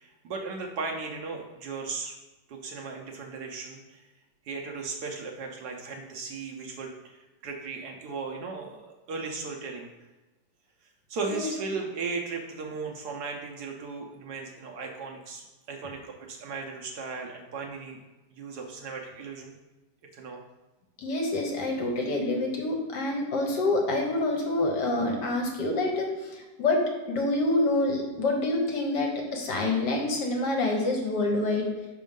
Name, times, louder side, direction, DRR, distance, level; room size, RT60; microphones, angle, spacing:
voice 1, 0.0-2.2 2.5-4.1 4.4-9.9 10.8-15.4 15.7-18.0 18.3-19.5 20.1-20.4, right 4 dB, 70° right, 1 dB, 1.1 m, -36 dB
voice 2, 21.0-31.7, left 2 dB, 65° left, 0 dB, 1.6 m, -27 dB
6.0 x 3.6 x 5.1 m, 1.1 s
omnidirectional pair, 2.0 m